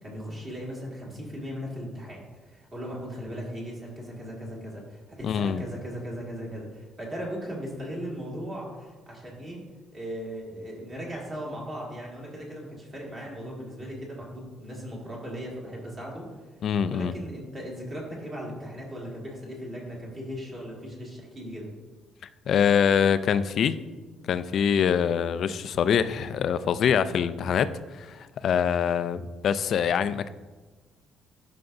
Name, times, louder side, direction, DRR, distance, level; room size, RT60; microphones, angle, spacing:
voice 1, 0.0-9.6 9.9-16.4 16.9-21.7, equal, 25° right, -3 dB, 1.9 m, -38 dB
voice 2, 5.2-5.6 16.6-17.1 22.5-23.8 24.3-30.3, left 7 dB, 45° left, 13 dB, 0.3 m, -24 dB
13.0 x 5.8 x 2.6 m, 1.3 s
cardioid pair, 175°, 0 cm